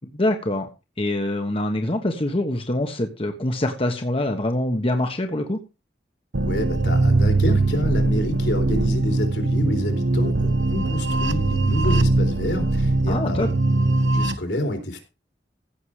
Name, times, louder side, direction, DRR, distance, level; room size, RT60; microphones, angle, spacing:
voice 1, 0.1-0.7 1.0-5.6 13.1-13.5, left 1 dB, 30° left, 1.3 m, -24 dB
sound 1, 6.3-14.3, right 2 dB, 90° right, 1.0 m, -21 dB
voice 2, 6.4-13.5 14.1-15.0, left 1 dB, 75° left, 3.9 m, -28 dB
16.0 x 6.8 x 4.9 m
head